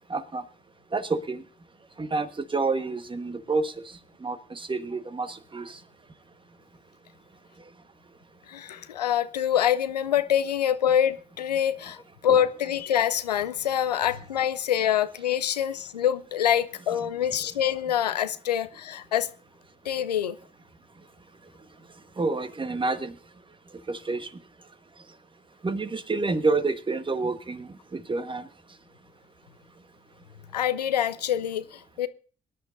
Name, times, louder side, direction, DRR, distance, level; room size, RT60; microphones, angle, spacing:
voice 1, 0.1-0.4 0.9-1.4 2.0-3.7 4.2-5.8 12.3-12.4 22.2-23.1 23.9-24.3 25.6-28.5, right 3 dB, 25° right, 1.3 m, -28 dB
voice 2, 8.5-12.0 12.2-19.3 19.9-20.4 30.5-32.1, left 10 dB, 85° left, 0.5 m, -25 dB
23.5 x 10.5 x 2.6 m
figure-of-eight pair, 45°, 20 cm